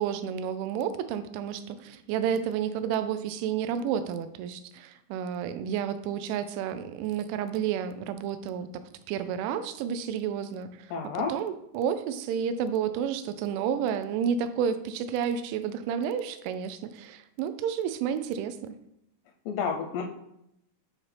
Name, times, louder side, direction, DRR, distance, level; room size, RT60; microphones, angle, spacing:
voice 1, 0.0-18.8, right 8 dB, 85° right, 11 dB, 2.9 m, -31 dB
voice 2, 10.9-11.3 19.5-20.0, left 6 dB, 85° left, 2 dB, 2.4 m, -30 dB
9.8 x 4.4 x 3.3 m, 0.80 s
omnidirectional pair, 5.3 m